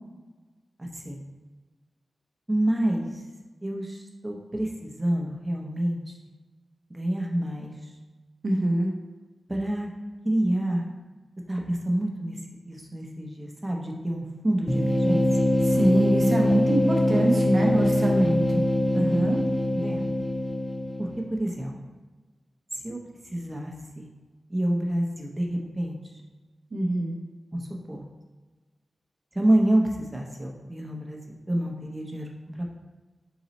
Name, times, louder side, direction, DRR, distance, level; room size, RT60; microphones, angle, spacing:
voice 1, 0.8-1.2 2.5-3.1 3.6-6.1 6.9-7.7 9.5-9.9 10.2-10.8 11.5-12.4 12.7-15.3 19.7-20.0 21.0-21.7 22.8-23.0 23.3-24.1 24.5-26.0 27.5-28.0 29.3-31.2 31.5-32.3 32.5-32.7, right 1 dB, 20° right, -1 dB, 0.7 m, -28 dB
voice 2, 8.4-8.9 15.6-18.6 18.9-19.4 26.7-27.2, right 1 dB, 60° right, -1 dB, 0.7 m, -24 dB
sound 1, 14.7-21.3, left 1 dB, ahead, 0.4 m, -23 dB
3.9 x 3.0 x 4.1 m, 1.3 s
wide cardioid pair, 105°, 0 cm